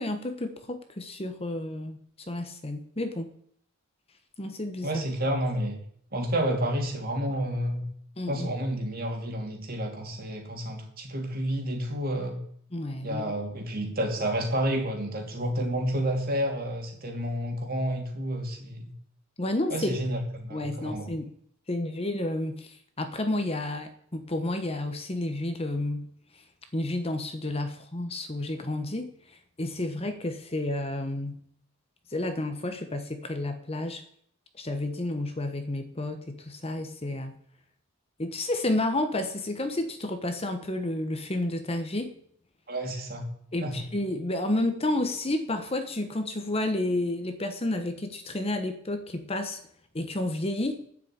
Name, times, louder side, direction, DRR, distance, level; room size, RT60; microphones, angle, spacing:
voice 1, 0.0-2.0 2.3-3.3 4.4-4.9 8.2-8.5 12.7-13.2 19.4-20.0 20.5-21.3 21.7-26.1 26.7-29.1 29.6-31.4 32.1-34.0 34.6-37.3 38.2-42.1 43.5-49.6 49.9-50.8, left 1 dB, 25° left, 7 dB, 1.1 m, -31 dB
voice 2, 4.8-5.8 6.1-7.8 8.3-12.4 13.0-18.9 19.7-21.1 42.7-43.3 43.6-43.7, right 1 dB, 45° right, 3 dB, 2.8 m, -30 dB
10.0 x 7.6 x 8.8 m, 0.65 s
head